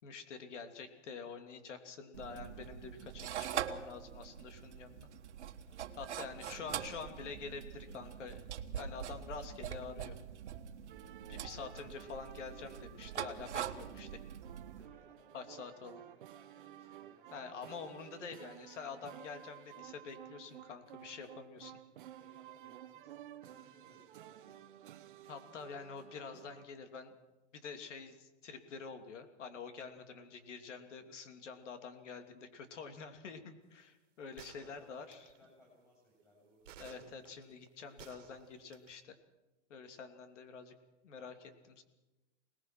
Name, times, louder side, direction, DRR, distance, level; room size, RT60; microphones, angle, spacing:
voice 1, 0.0-5.1 6.0-8.4 8.7-10.1 11.3-14.2 15.3-16.0 17.3-21.8 25.3-27.2 27.5-35.2 36.8-39.2 39.7-40.7 41.0-41.8, left 5 dB, 75° left, 7 dB, 3.0 m, -47 dB
sound 1, 2.1-14.9, right 9 dB, 65° right, 1.5 m, -43 dB
voice 2, 5.7-6.5 14.7-17.7 22.2-24.6 34.3-36.8, equal, 10° left, -2 dB, 7.8 m, -65 dB
sound 2, 10.9-26.7, right 12 dB, 45° right, 1.0 m, -54 dB
sound 3, 34.4-35.4 36.6-39.0, right 9 dB, 90° right, 1.7 m, -56 dB
25.5 x 19.5 x 6.0 m, 1.1 s
supercardioid pair, 180°, 36 cm